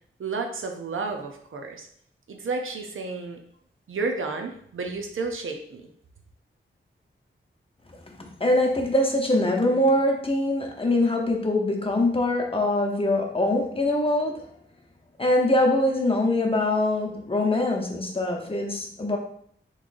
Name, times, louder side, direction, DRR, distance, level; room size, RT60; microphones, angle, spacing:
voice 1, 0.2-1.9 2.3-3.4 3.9-5.9, right 3 dB, 75° right, 3 dB, 0.6 m, -31 dB
voice 2, 8.2-14.4 15.2-19.2, left 1 dB, 25° left, 1 dB, 0.8 m, -23 dB
3.7 x 3.1 x 2.5 m, 0.63 s
wide cardioid pair, 60°, 21 cm